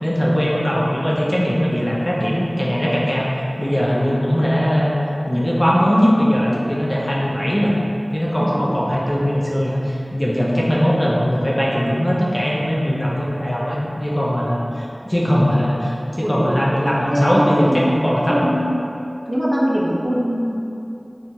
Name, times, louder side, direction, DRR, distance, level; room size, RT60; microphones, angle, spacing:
voice 1, 0.0-3.3 3.6-5.0 5.3-7.7 8.1-18.4, equal, 25° left, -5 dB, 0.6 m, -20 dB
voice 2, 8.4-8.7 16.2-16.6 17.1-17.9 18.3-18.7 19.3-20.5, equal, 30° right, -5 dB, 0.5 m, -22 dB
4.5 x 2.3 x 2.7 m, 2.7 s
wide cardioid pair, 40°, 0 cm